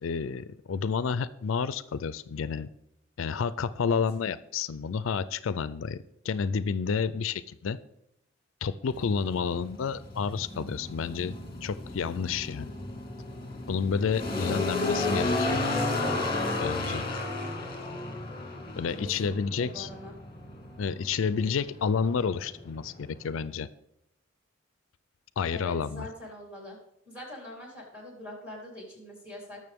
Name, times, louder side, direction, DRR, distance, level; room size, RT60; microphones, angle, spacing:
voice 1, 0.0-2.7 3.2-6.0 6.2-7.8 8.6-11.3 11.6-12.7 13.7-15.6 16.6-17.0 18.8-19.9 20.8-23.7 25.4-26.1, left 6 dB, 75° left, 16 dB, 0.4 m, -30 dB
sound 1, 8.9-23.3, left 2 dB, 25° left, 1.7 m, -33 dB
voice 2, 19.0-20.2 25.5-26.8 27.1-29.6, left 1 dB, 5° right, -2 dB, 3.6 m, -43 dB
19.0 x 6.5 x 3.6 m, 0.79 s
head